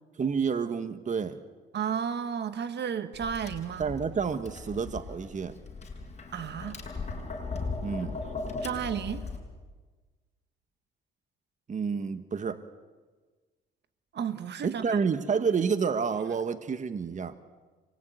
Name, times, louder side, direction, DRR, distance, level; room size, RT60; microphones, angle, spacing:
voice 1, 0.2-1.4 3.8-5.6 7.8-8.2 11.7-12.6 14.6-17.3, right 6 dB, 40° right, 9 dB, 1.4 m, -29 dB
voice 2, 1.7-3.9 6.3-6.8 8.6-9.2 14.1-15.0, right 8 dB, 60° right, 10 dB, 1.6 m, -33 dB
Tap, 3.1-9.4, left 3 dB, 35° left, 6.5 m, -38 dB
26.0 x 21.5 x 9.3 m, 1.4 s
cardioid pair, 90°, 20 cm